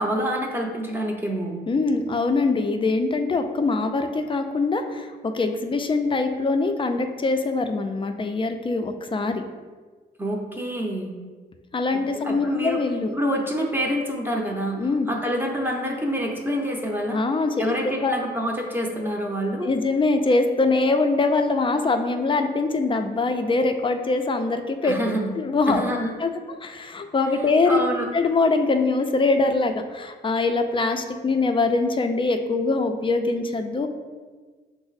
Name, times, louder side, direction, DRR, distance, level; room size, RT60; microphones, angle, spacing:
voice 1, 0.0-1.6 10.2-11.1 11.9-12.8 13.1-17.2 17.6-19.7 24.8-25.3 25.7-26.1 27.7-28.1, equal, 10° right, 0 dB, 0.7 m, -27 dB
voice 2, 1.7-9.4 11.7-13.1 14.8-15.1 17.1-17.7 18.0-18.1 19.6-24.9 25.4-25.8 26.2-26.3 26.6-27.8 28.1-33.9, left 3 dB, 25° left, 6 dB, 0.4 m, -23 dB
5.8 x 2.0 x 4.0 m, 1.4 s
cardioid pair, 90°, 19 cm